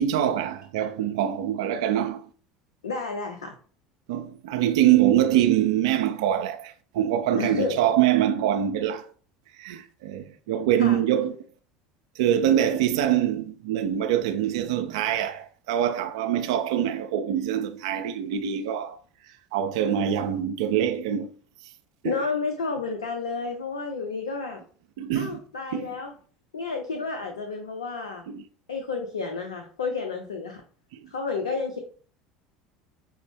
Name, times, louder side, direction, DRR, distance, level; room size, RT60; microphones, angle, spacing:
voice 1, 0.0-2.3 4.1-9.1 9.6-11.4 12.1-19.0 19.5-21.3 22.0-22.2 25.0-25.4 25.7-25.9 28.3-28.4, right 10 dB, 75° right, 0.3 m, -24 dB
voice 2, 2.8-3.5 7.4-7.8 10.8-11.0 22.0-24.6 25.1-26.1 26.5-28.2 28.7-30.6 31.1-31.8, left 4 dB, 90° left, 0.5 m, -31 dB
6.0 x 2.0 x 3.3 m
hypercardioid pair, 75°, 3 cm